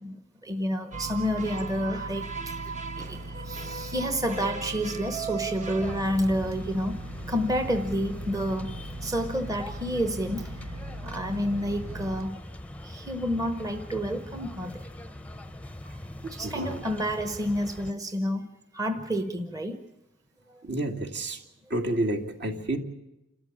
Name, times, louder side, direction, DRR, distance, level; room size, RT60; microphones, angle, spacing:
voice 1, 0.0-8.7 9.0-10.7 11.0-12.4 12.8-14.8 16.2-18.5 18.7-19.8 20.5-20.6, equal, 15° right, 8 dB, 1.0 m, -30 dB
sound 1, 0.9-6.0, right 5 dB, 40° right, 1.1 m, -38 dB
sound 2, 0.9-12.3, right 1 dB, 80° right, 0.8 m, -40 dB
sound 3, 5.8-17.9, left 1 dB, 5° left, 0.7 m, -42 dB
voice 2, 16.4-16.8 20.6-21.4 21.7-22.8, right 1 dB, 60° right, 4 dB, 2.4 m, -30 dB
28.5 x 13.5 x 8.7 m, 0.90 s
head